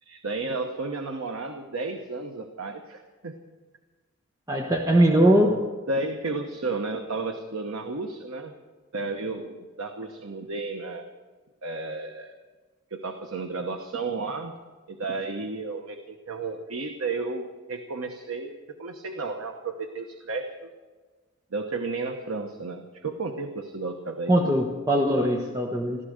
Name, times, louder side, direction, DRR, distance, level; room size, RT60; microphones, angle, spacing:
voice 1, 0.0-3.3 5.9-8.5 8.9-11.1 11.6-12.3 12.9-14.6 14.9-20.7 21.5-24.4, right 3 dB, 90° right, 5 dB, 1.0 m, -33 dB
voice 2, 4.5-5.6 24.3-26.0, right 1 dB, 15° right, 1 dB, 1.0 m, -21 dB
15.5 x 13.5 x 6.5 m, 1.4 s
head